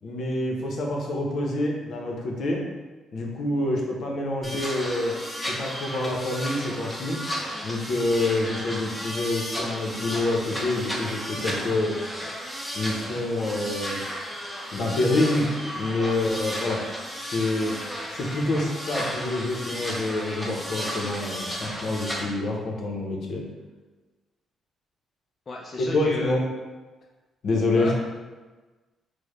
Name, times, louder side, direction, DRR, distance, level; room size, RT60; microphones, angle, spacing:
voice 1, 0.0-2.6 3.1-5.2 5.5-7.2 7.6-12.0 12.7-14.0 14.7-16.8 17.3-17.8 18.1-23.4 25.8-26.5 27.4-27.9, left 2 dB, 65° left, 0 dB, 0.7 m, -27 dB
sound 1, 4.4-22.2, equal, ahead, 0.7 m, -34 dB
voice 2, 25.5-26.4 27.8-27.9, left 2 dB, 35° left, -1 dB, 0.4 m, -34 dB
4.6 x 2.1 x 3.1 m, 1.3 s
cardioid pair, 90°, 0 cm